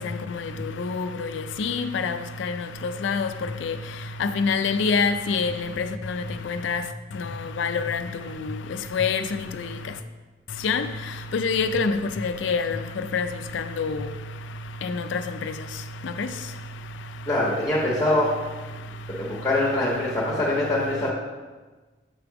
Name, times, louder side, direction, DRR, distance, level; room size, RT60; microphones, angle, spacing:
voice 1, 0.8-1.3 1.6-2.5 3.0-3.3 3.6-3.7 4.2-5.5 6.1-6.2 6.5-6.8 7.6-8.0 8.9-9.4 10.6-10.8 11.3-12.0 12.2-12.8 13.1-13.3 13.8-14.0 14.8-15.2 16.2-16.3, left 5 dB, 75° left, 9 dB, 0.4 m, -25 dB
voice 2, 17.3-18.3 19.2-21.1, left 1 dB, 15° left, -7 dB, 1.1 m, -23 dB
8.1 x 3.5 x 5.8 m, 1.3 s
head